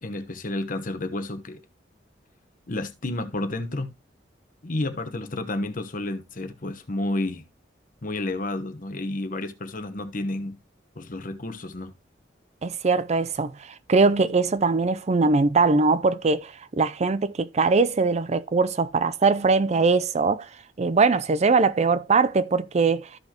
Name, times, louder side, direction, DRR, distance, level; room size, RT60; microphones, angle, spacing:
voice 1, 0.0-1.6 2.7-3.9 4.6-7.4 8.0-10.6 10.9-11.9, left 2 dB, 50° left, 1.1 m, -31 dB
voice 2, 12.6-20.5 20.8-23.1, right 4 dB, 40° right, 0.5 m, -21 dB
13.5 x 5.3 x 2.9 m
head